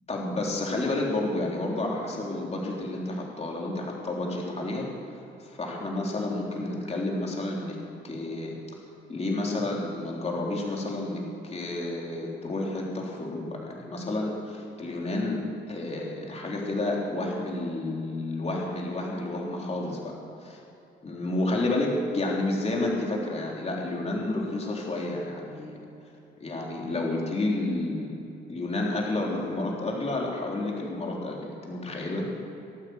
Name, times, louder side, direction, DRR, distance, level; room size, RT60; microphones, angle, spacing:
voice 1, 0.1-4.9 5.4-7.8 8.0-8.6 9.1-20.1 20.4-20.6 21.0-25.8 26.4-28.2 28.5-32.3, left 2 dB, 30° left, -2 dB, 3.5 m, -30 dB
18.5 x 9.2 x 7.9 m, 2.8 s
cardioid pair, 90°, 20 cm